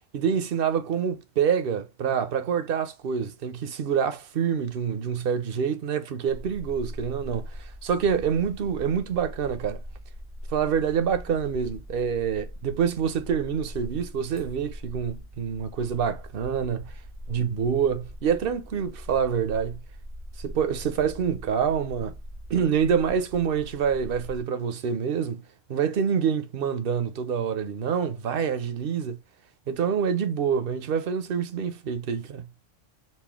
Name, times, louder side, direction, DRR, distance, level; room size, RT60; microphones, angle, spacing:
voice 1, 0.1-9.8 10.5-16.9 17.3-19.8 20.4-22.2 22.5-29.2 29.7-32.5, right 7 dB, 55° right, 0.9 m, -26 dB
sound 1, 6.3-24.4, equal, 15° right, 0.5 m, -41 dB
4.3 x 2.5 x 3.5 m
omnidirectional pair, 1.2 m